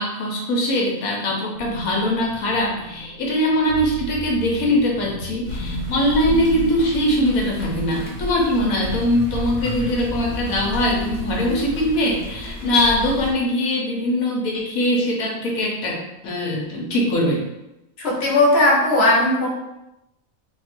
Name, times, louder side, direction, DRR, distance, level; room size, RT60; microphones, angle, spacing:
voice 1, 0.0-17.5, left 1 dB, 85° left, -1 dB, 1.4 m, -22 dB
sound 1, 1.5-12.6, left 2 dB, 70° left, 1.1 m, -34 dB
sound 2, 5.4-13.3, equal, 25° left, 1.0 m, -32 dB
voice 2, 18.0-19.5, left 2 dB, 50° left, -4 dB, 1.3 m, -17 dB
3.6 x 2.4 x 4.4 m, 0.92 s
omnidirectional pair, 1.4 m